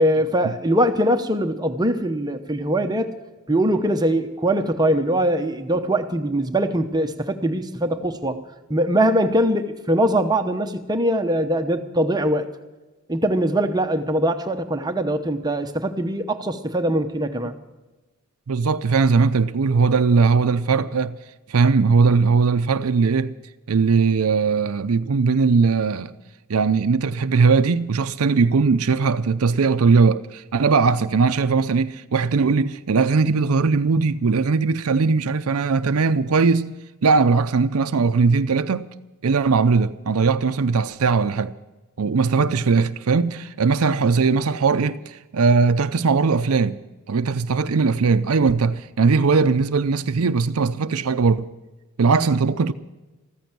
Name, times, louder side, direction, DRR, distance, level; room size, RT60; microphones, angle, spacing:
voice 1, 0.0-3.1 3.5-8.4 8.7-12.5 13.1-17.6, right 1 dB, 20° right, 0.9 m, -22 dB
voice 2, 18.5-21.2 21.5-23.3 23.7-26.1 26.5-36.7 37.0-38.9 39.2-41.5 42.0-46.8 47.1-51.5 52.0-52.7, right 4 dB, 75° right, 0.6 m, -19 dB
14.5 x 14.5 x 6.1 m
head